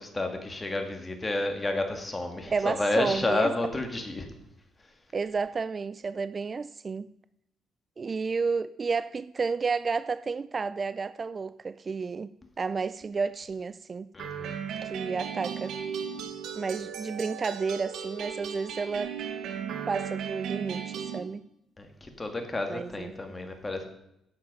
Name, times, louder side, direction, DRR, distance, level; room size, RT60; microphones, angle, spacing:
voice 1, 0.0-4.3 14.1-14.6 21.8-23.8, left 2 dB, 20° left, 2.0 m, -31 dB
voice 2, 2.5-3.5 5.1-7.1 8.0-12.3 12.6-14.1 14.8-15.7 16.6-19.1 19.9-21.4 22.7-23.1, right 4 dB, 35° right, 0.3 m, -31 dB
sound 1, 14.2-21.2, right 7 dB, 75° right, 1.4 m, -36 dB
10.5 x 7.8 x 5.4 m
cardioid pair, 90°, 0 cm